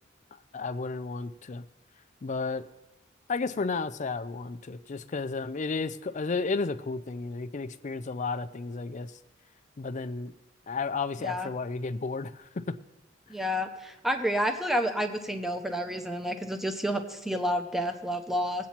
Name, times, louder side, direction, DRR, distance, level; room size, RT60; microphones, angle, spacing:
voice 1, 0.5-1.6 2.2-2.7 3.3-9.1 9.8-10.3 10.7-12.7, left 4 dB, 40° left, 12 dB, 0.5 m, -32 dB
voice 2, 13.3-18.7, equal, ahead, 5 dB, 0.7 m, -30 dB
21.5 x 8.4 x 2.9 m, 1.0 s
head